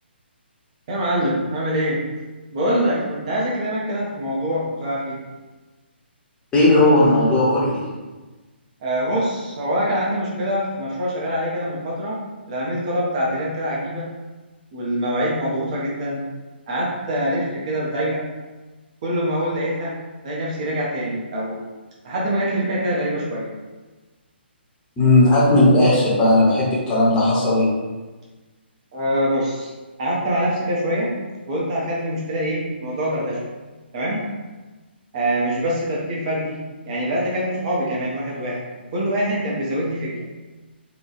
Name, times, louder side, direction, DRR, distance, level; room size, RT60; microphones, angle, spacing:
voice 1, 0.9-2.0 2.5-5.2 8.8-12.2 12.5-14.1 14.7-16.2 16.7-18.2 19.0-20.0 20.2-21.6 22.0-23.5 28.9-29.7 30.0-31.1 31.5-33.4 33.9-34.3 35.1-36.6 36.8-40.1, equal, 35° right, -5 dB, 0.6 m, -24 dB
voice 2, 6.5-7.9 19.4-19.5 25.0-27.7, left 2 dB, 15° left, -8 dB, 0.8 m, -16 dB
3.0 x 2.2 x 2.5 m, 1.2 s
figure-of-eight pair, 135°, 6 cm